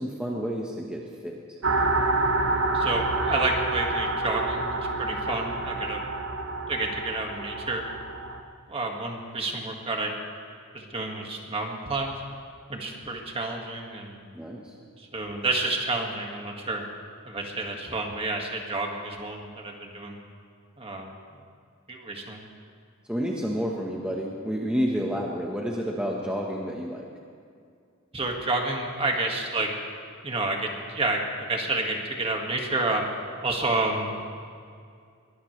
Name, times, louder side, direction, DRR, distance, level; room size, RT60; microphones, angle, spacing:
voice 1, 0.0-1.4 14.3-14.7 23.1-27.0, equal, 5° right, -2 dB, 1.2 m, -30 dB
sound 1, 1.6-8.4, right 2 dB, 65° right, 1.0 m, -28 dB
voice 2, 2.7-6.0 6.7-7.9 8.7-10.1 10.7-12.1 12.7-14.2 15.0-16.8 17.3-20.2 20.8-21.1 21.9-22.4 28.1-29.7 30.2-31.2 31.5-33.0 33.4-34.2, right 2 dB, 30° right, 1 dB, 1.9 m, -29 dB
22.5 x 18.5 x 3.3 m, 2.3 s
head